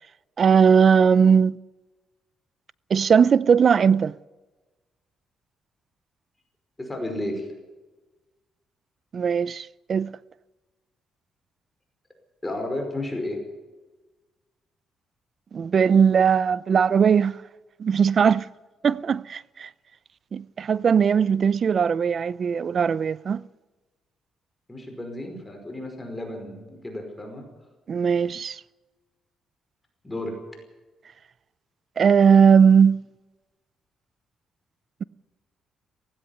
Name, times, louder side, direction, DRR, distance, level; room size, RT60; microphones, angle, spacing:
voice 1, 0.4-1.6 2.9-4.1 9.1-10.1 15.5-17.4 17.8-18.5 18.8-19.7 20.3-23.4 27.9-28.6 32.0-33.1, right 6 dB, 50° right, 0.6 m, -19 dB
voice 2, 6.8-7.5 12.4-13.4 24.7-27.5 30.0-30.3, left 1 dB, 15° left, 5.2 m, -32 dB
17.0 x 16.0 x 9.7 m
cardioid pair, 90°, 0 cm